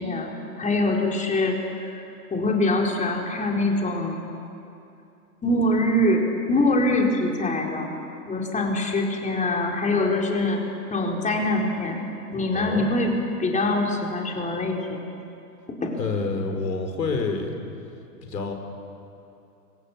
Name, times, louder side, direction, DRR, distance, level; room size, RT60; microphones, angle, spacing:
voice 1, 0.0-2.0 2.3-4.2 5.4-7.9 8.3-10.6 10.9-12.1 12.3-15.0 15.7-16.0, left 2 dB, 15° left, 0 dB, 4.3 m, -24 dB
voice 2, 12.5-12.9 16.0-17.6 18.2-18.5, left 4 dB, 85° left, 4 dB, 4.7 m, -28 dB
30.0 x 23.5 x 7.2 m, 2.7 s
hypercardioid pair, 110°, 48 cm